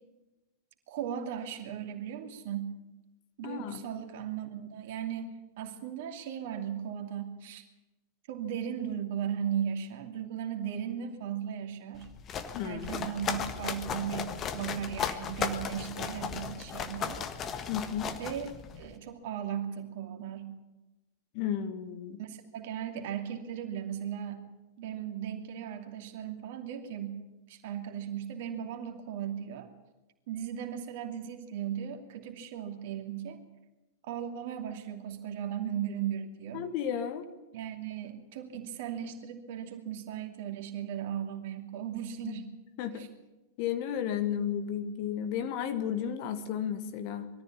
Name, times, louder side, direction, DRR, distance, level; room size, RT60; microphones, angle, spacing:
voice 1, 0.9-2.7 3.4-7.6 8.3-12.1 12.6-17.2 18.2-20.5 22.2-24.4 24.8-27.2 27.5-29.7 30.3-33.4 34.0-36.6 37.5-42.5 42.9-43.1, right 9 dB, 50° right, 4 dB, 2.6 m, -37 dB
voice 2, 3.4-3.8 12.5-13.0 17.7-18.1 21.3-22.2 36.5-37.2 42.2-42.4 42.8-43.1 43.6-47.3, left 9 dB, 45° left, 8 dB, 1.7 m, -33 dB
sound 1, 11.9-18.9, left 7 dB, 30° left, 1.5 m, -36 dB
22.0 x 14.0 x 8.6 m, 1.0 s
figure-of-eight pair, 90°, 0 cm